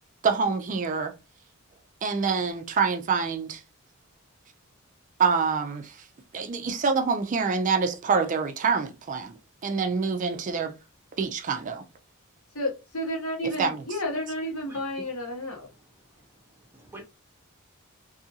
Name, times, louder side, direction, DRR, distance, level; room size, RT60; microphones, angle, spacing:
voice 1, 0.2-1.1 2.0-3.6 5.2-6.0 6.3-9.3 9.6-10.7 11.2-11.8 13.6-13.8, right 5 dB, 35° right, 0.4 m, -26 dB
voice 2, 12.5-15.7, left 1 dB, 75° left, 1.2 m, -31 dB
voice 3, 16.2-17.0, right 2 dB, 10° right, 0.7 m, -48 dB
2.7 x 2.5 x 2.7 m
head